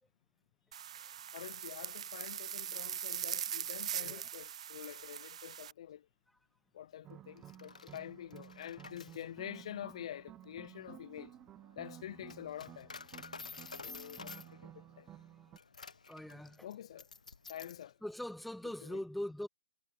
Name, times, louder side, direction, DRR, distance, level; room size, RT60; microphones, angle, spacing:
sound 1, 0.7-5.7, right 9 dB, 60° right, 0.3 m, -41 dB
voice 1, 1.3-6.1 6.7-11.3 11.8-12.9 13.8-15.1 16.6-17.1 17.5-18.0 18.9-19.0, left 11 dB, 55° left, 0.5 m, -47 dB
voice 2, 4.0-4.3 16.1-16.7 18.0-19.5, left 1 dB, ahead, 1.4 m, -41 dB
sound 2, 7.0-15.6, right 12 dB, 20° right, 0.7 m, -54 dB
Coin (dropping), 7.4-17.9, left 4 dB, 90° left, 1.0 m, -52 dB
hypercardioid pair, 135°, 4 cm